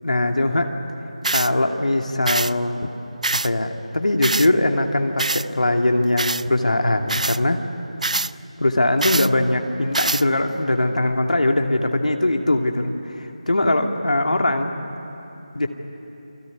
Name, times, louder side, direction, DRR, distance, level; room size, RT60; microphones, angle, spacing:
voice 1, 0.0-0.7 1.3-2.9 3.4-7.6 8.6-14.7 15.5-15.7, left 1 dB, 80° left, 3 dB, 2.5 m, -21 dB
sound 1, 1.2-1.5 2.3-2.5 3.2-3.5 4.2-4.5 5.2-5.5 6.2-6.4 7.1-7.4 8.0-8.3 9.0-9.3 9.9-10.2, right 2 dB, 75° right, 0.5 m, -23 dB
28.5 x 21.5 x 9.7 m, 3.0 s
figure-of-eight pair, 175°, 4 cm